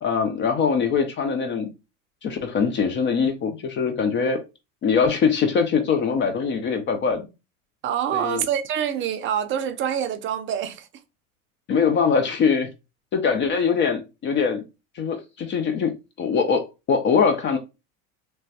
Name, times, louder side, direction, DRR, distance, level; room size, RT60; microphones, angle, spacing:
voice 1, 0.0-1.7 2.2-4.4 4.8-7.2 8.1-8.4 11.7-12.7 13.1-14.6 15.0-17.6, left 6 dB, 30° left, 0.4 m, -22 dB
voice 2, 7.8-10.9, right 9 dB, 30° right, 0.5 m, -26 dB
3.0 x 2.2 x 2.7 m
hypercardioid pair, 95°, 42 cm